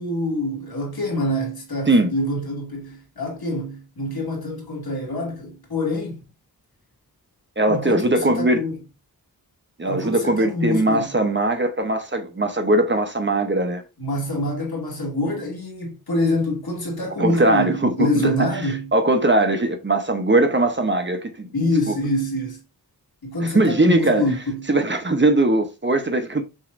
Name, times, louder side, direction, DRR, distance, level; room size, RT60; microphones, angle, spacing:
voice 1, 0.0-6.2 7.7-8.8 9.9-11.1 14.0-18.9 21.5-22.6 23.2-24.7, left 1 dB, 70° left, 2.1 m, -26 dB
voice 2, 7.6-8.7 9.8-13.8 17.2-18.3 18.9-21.5 21.9-22.0 23.4-24.3 24.7-26.4, right 2 dB, 30° right, 0.9 m, -20 dB
6.4 x 3.1 x 2.5 m
wide cardioid pair, 65°, 38 cm